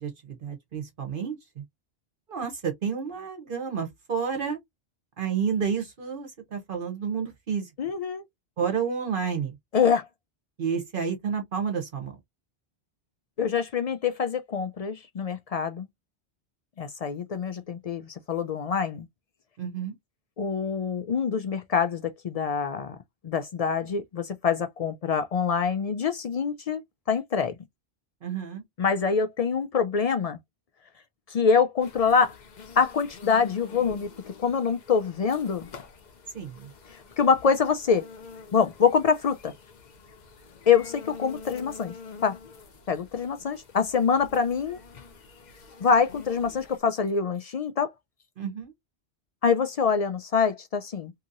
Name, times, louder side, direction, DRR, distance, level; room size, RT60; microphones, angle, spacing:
voice 1, 0.0-1.6 2.3-4.6 5.2-7.7 8.6-9.5 10.6-12.2 19.6-19.9 28.2-28.6 36.3-36.7 48.4-48.7, right 6 dB, 55° right, 1.0 m, -30 dB
voice 2, 7.8-8.2 9.7-10.1 13.4-15.9 16.8-19.1 20.4-23.0 23.2-26.8 27.1-27.5 28.8-30.4 31.3-32.4 32.8-34.1 34.4-35.7 37.2-38.1 38.5-39.5 40.7-41.9 42.2-42.4 42.9-44.8 45.8-47.9 49.4-51.1, left 6 dB, 65° left, 0.3 m, -25 dB
sound 1, 31.8-46.8, left 5 dB, 50° left, 0.7 m, -46 dB
2.8 x 2.7 x 2.5 m
omnidirectional pair, 1.1 m